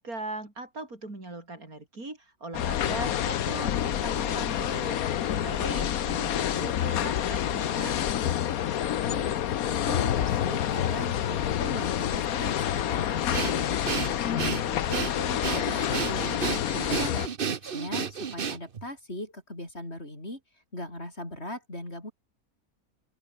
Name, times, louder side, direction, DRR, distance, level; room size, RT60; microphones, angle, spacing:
voice 1, 0.0-5.0 5.3-8.0, right 2 dB, 70° right, 6.0 m, -39 dB
sound 1, 2.5-17.3, left 10 dB, 70° left, 1.3 m, -28 dB
voice 2, 5.5-6.0 9.0-9.4 9.7-16.4 16.9-20.4 20.7-22.1, left 1 dB, 45° left, 8.0 m, -39 dB
Breathing, 13.3-18.8, right 6 dB, 40° right, 1.0 m, -32 dB
open air
omnidirectional pair, 1.6 m